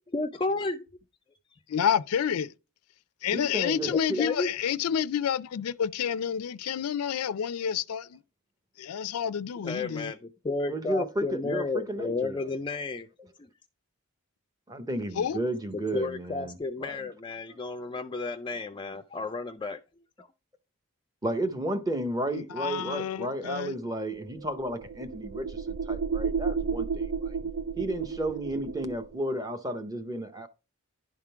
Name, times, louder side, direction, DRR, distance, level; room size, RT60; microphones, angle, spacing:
voice 1, 0.1-0.8 3.8-4.5 9.6-10.2 10.4-13.1 15.7-19.8 20.2-20.3, left 3 dB, 20° left, 0.3 m, -32 dB
voice 2, 1.7-2.5 3.2-8.2 8.8-10.1 15.2-15.4 22.3-23.7, left 8 dB, 90° left, 0.4 m, -29 dB
voice 3, 3.3-4.2 10.7-12.5 14.7-17.1 21.2-27.4 27.8-30.5, right 1 dB, 15° right, 0.7 m, -33 dB
sound 1, 24.2-29.1, right 5 dB, 75° right, 0.3 m, -32 dB
11.0 x 3.7 x 4.5 m
head